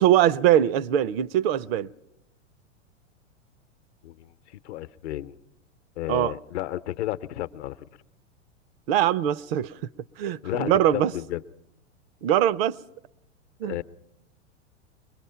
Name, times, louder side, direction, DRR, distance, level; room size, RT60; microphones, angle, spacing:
voice 1, 0.0-1.9 6.1-6.3 8.9-9.7 10.2-11.1 12.2-12.8 13.6-13.8, right 11 dB, 50° right, 0.7 m, -22 dB
voice 2, 4.6-5.3 6.0-7.8 10.4-11.4 13.6-13.8, left 14 dB, 60° left, 0.8 m, -32 dB
23.5 x 21.0 x 5.7 m
hypercardioid pair, 100°, 37 cm